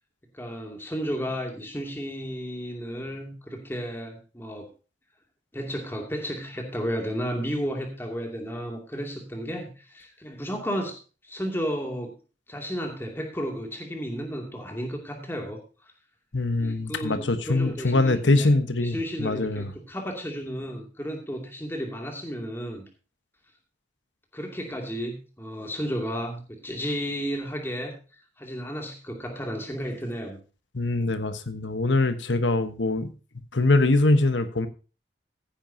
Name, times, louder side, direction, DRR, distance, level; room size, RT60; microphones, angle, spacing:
voice 1, 0.3-4.7 5.5-11.0 11.2-12.1 12.5-15.6 16.6-18.5 18.8-22.8 24.3-27.9 28.4-30.4, equal, 10° left, 2 dB, 2.5 m, -33 dB
voice 2, 16.3-19.7 30.7-33.1 33.5-34.7, left 2 dB, 80° left, 10 dB, 1.2 m, -23 dB
15.0 x 10.0 x 2.8 m, 0.33 s
head